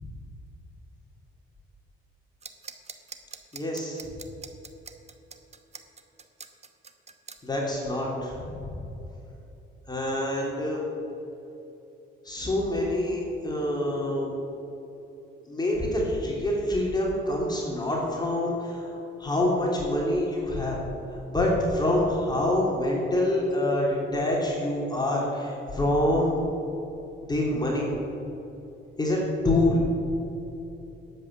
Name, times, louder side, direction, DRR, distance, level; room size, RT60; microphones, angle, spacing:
sound 1, 2.4-7.4, right 5 dB, 35° right, 1.0 m, -43 dB
voice 1, 3.5-4.0 7.4-8.8 9.9-10.8 12.2-14.3 15.5-20.8 21.3-26.4 27.3-27.9 29.0-29.8, left 1 dB, 20° left, -3 dB, 2.8 m, -26 dB
11.0 x 8.0 x 7.3 m, 3.0 s
cardioid pair, 90°, 20 cm